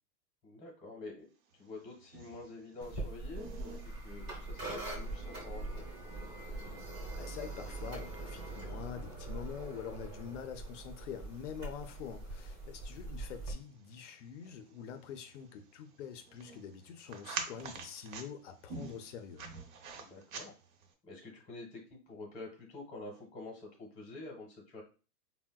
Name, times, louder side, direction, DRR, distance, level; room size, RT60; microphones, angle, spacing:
voice 1, 0.4-1.3 1.6-3.8 4.0-5.9 19.9-20.5 21.0-24.8, left 2 dB, 20° left, -3 dB, 0.7 m, -48 dB
sound 1, 1.5-20.9, right 5 dB, 60° right, 0.7 m, -50 dB
sound 2, 2.8-13.5, right 2 dB, 20° right, 0.5 m, -42 dB
voice 2, 7.2-19.5, left 7 dB, 50° left, 8 dB, 0.5 m, -45 dB
3.7 x 2.1 x 2.2 m, 0.36 s
hypercardioid pair, 155°, 48 cm